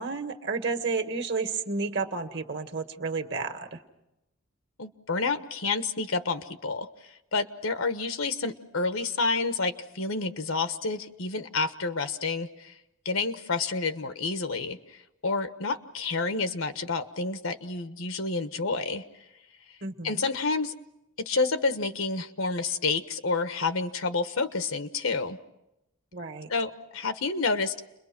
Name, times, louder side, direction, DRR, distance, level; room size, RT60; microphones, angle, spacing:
voice 1, 0.0-3.8 19.8-20.3 26.1-26.5, right 4 dB, 55° right, 7 dB, 1.7 m, -31 dB
voice 2, 4.8-6.9 7.3-12.7 13.0-14.8 15.2-19.0 20.0-20.7 21.2-25.4 26.5-27.9, left 3 dB, 85° left, 9 dB, 1.3 m, -29 dB
30.0 x 22.5 x 6.0 m, 0.91 s
head